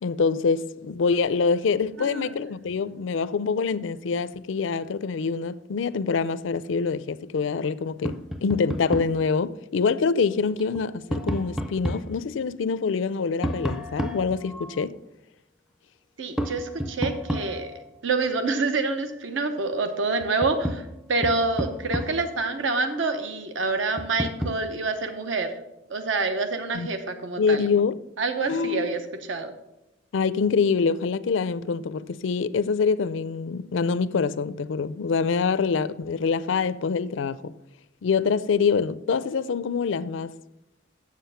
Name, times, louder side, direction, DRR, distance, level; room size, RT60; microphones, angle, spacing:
voice 1, 0.0-8.2 8.4-15.0 26.7-26.9 27.4-28.0 28.5-29.0 30.1-37.5 38.0-40.3, left 5 dB, 70° left, 0.4 m, -25 dB
voice 2, 2.0-2.4 16.2-17.7 18.0-20.8 21.1-25.5 25.9-27.6 28.2-29.0 29.3-29.5, right 3 dB, 70° right, 0.8 m, -27 dB
Tap, 8.0-9.2 10.6-12.1 13.4-14.9 16.4-17.9 19.7-19.8 20.2-22.4 24.0-24.6, equal, ahead, 0.5 m, -31 dB
7.6 x 7.5 x 5.6 m
head